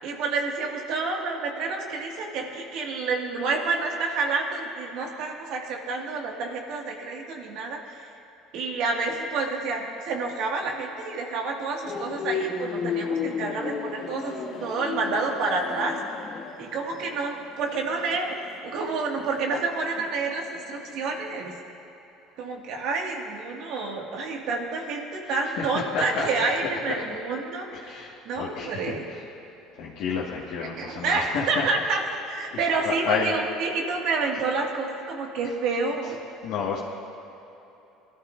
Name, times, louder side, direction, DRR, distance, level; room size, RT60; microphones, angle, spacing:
voice 1, 0.0-7.8 8.5-14.3 14.6-16.0 16.6-18.4 18.6-21.5 22.4-29.0 30.8-36.2, right 4 dB, 65° right, 0 dB, 2.0 m, -29 dB
sound 1, 11.8-20.9 21.2-21.5, left 6 dB, 45° left, 1.1 m, -33 dB
voice 2, 25.9-26.3 26.6-27.0 27.7-29.2 29.8-31.7 32.5-33.3 36.4-36.8, left 6 dB, 70° left, -5 dB, 1.7 m, -30 dB
22.0 x 12.5 x 2.6 m, 3.0 s
supercardioid pair, 95°, 0 cm